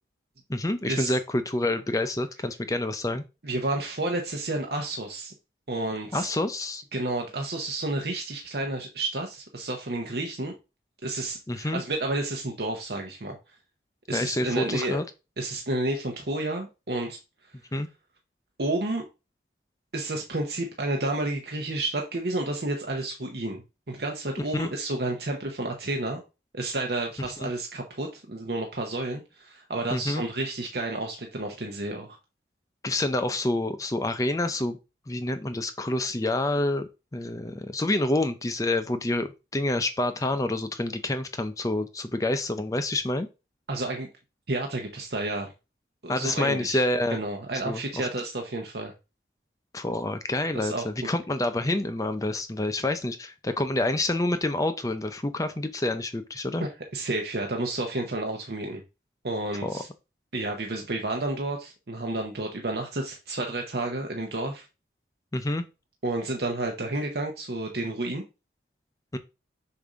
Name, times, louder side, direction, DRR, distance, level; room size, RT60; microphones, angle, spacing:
voice 1, 0.5-3.2 6.1-6.8 11.5-11.8 14.1-15.0 17.7-17.9 24.5-24.7 27.4-27.5 29.9-30.2 32.8-34.8 35.1-43.3 46.1-47.2 47.7-48.1 49.7-56.7 59.6-59.7 65.3-65.6 69.1-69.2, left 2 dB, 20° left, 10 dB, 0.5 m, -28 dB
voice 2, 3.4-5.3 5.7-6.3 6.9-10.5 11.0-13.4 14.1-15.0 15.4-17.2 18.6-19.0 19.9-26.2 26.5-32.2 43.7-44.1 44.5-45.5 46.0-46.8 47.1-48.9 50.5-51.1 56.6-58.8 59.2-59.9 60.3-64.7 66.0-68.2, right 2 dB, 60° right, 2 dB, 0.9 m, -31 dB
6.9 x 2.7 x 5.0 m, 0.28 s
head